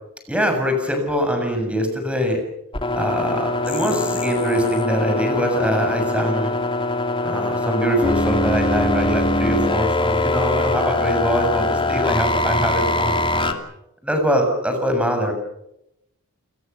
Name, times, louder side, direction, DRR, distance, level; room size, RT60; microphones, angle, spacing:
voice 1, 0.3-2.4 3.0-6.6 7.2-13.5 14.0-15.3, equal, 5° right, 4 dB, 7.1 m, -23 dB
sound 1, 2.7-13.5, left 2 dB, 25° left, 2.7 m, -22 dB
30.0 x 21.0 x 7.0 m, 0.81 s
head